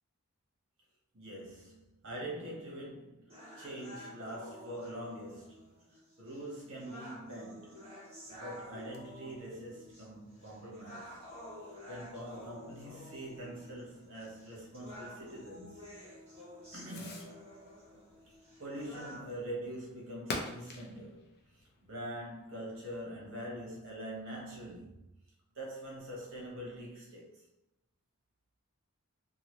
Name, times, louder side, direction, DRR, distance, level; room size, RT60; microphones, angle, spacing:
voice 1, 1.1-5.7 6.2-7.9 8.3-11.1 11.9-15.8 16.7-17.5 18.3-25.1 25.5-27.5, right 1 dB, 60° right, 1.0 m, -44 dB
sound 1, 3.3-19.3, equal, 25° right, 1.1 m, -51 dB
Fireworks, 8.2-22.8, left 2 dB, 45° left, 0.5 m, -50 dB
2.8 x 2.5 x 2.9 m
head